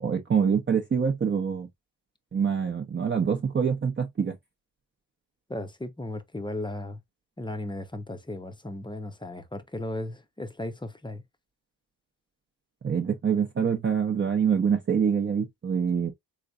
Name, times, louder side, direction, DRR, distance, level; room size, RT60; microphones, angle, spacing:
voice 1, 0.0-1.7 2.3-4.4 12.8-16.1, right 7 dB, 25° right, 0.7 m, -25 dB
voice 2, 5.5-7.0 7.4-11.2, left 1 dB, 10° left, 0.7 m, -36 dB
3.8 x 3.2 x 2.4 m
cardioid pair, 70°, 44 cm